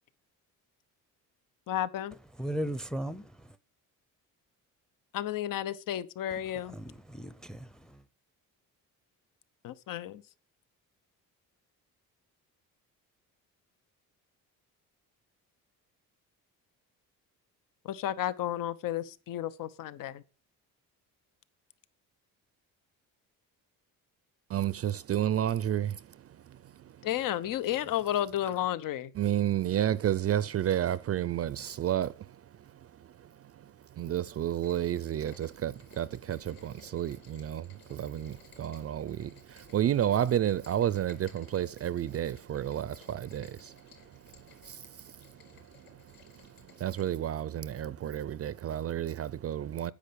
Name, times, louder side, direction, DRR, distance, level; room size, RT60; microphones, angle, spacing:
voice 1, 1.7-2.2 5.1-6.8 9.6-10.2 17.8-20.2 27.0-29.1, left 12 dB, 70° left, 1.0 m, -32 dB
voice 2, 2.4-3.6 6.7-8.0, right 1 dB, ahead, 0.7 m, -37 dB
voice 3, 24.5-27.1 29.2-49.9, right 11 dB, 45° right, 0.5 m, -32 dB
Rain, 34.6-47.0, left 6 dB, 85° left, 5.2 m, -59 dB
10.0 x 8.7 x 6.9 m
cardioid pair, 120°, 34 cm